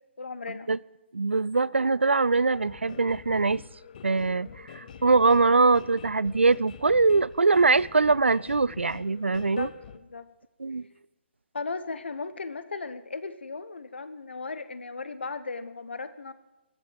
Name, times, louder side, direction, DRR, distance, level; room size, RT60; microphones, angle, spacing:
voice 1, 0.2-0.7 9.3-10.3 11.5-16.3, left 4 dB, 65° left, 1.3 m, -36 dB
voice 2, 1.1-3.6 4.0-9.7 10.6-10.8, right 3 dB, 75° right, 0.5 m, -22 dB
sound 1, 2.5-10.0, left 7 dB, 40° left, 1.0 m, -46 dB
15.5 x 12.0 x 7.6 m
figure-of-eight pair, 135°, 6 cm